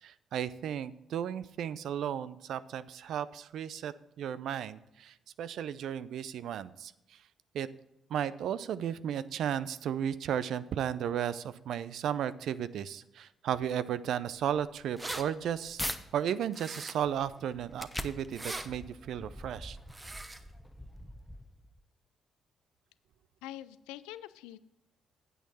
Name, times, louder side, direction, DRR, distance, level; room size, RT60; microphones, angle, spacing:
voice 1, 0.0-6.9 7.5-7.7 8.1-15.8 16.1-19.8, right 9 dB, 70° right, 15 dB, 0.4 m, -34 dB
sound 1, 15.0-16.0 16.5-21.8, left 1 dB, 5° left, 0.9 m, -43 dB
sound 2, 15.0-15.2 16.5-17.2 18.2-18.7 19.9-20.4, right 2 dB, 25° right, 1.0 m, -40 dB
voice 2, 23.4-24.6, left 14 dB, 85° left, 16 dB, 0.3 m, -44 dB
9.1 x 8.3 x 4.1 m, 0.87 s
hypercardioid pair, 50°, 0 cm